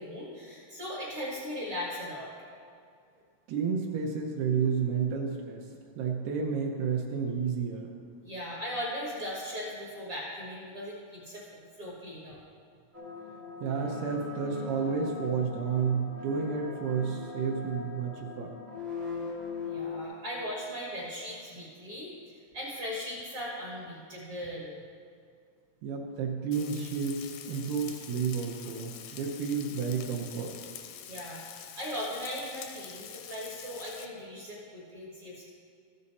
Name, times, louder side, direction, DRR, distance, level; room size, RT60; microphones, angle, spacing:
voice 1, 0.0-2.3 8.2-12.4 19.6-24.8 31.0-35.5, equal, 55° right, -5 dB, 1.6 m, -38 dB
voice 2, 3.5-5.6 6.0-7.9 13.6-18.5 25.8-30.6, right 6 dB, 80° right, 0 dB, 2.7 m, -31 dB
sound 1, 12.9-20.0, left 5 dB, 30° right, 0.6 m, -40 dB
Frying (food), 26.5-34.1, left 9 dB, 85° left, 1.9 m, -46 dB
14.0 x 7.6 x 4.2 m, 2.3 s
omnidirectional pair, 4.5 m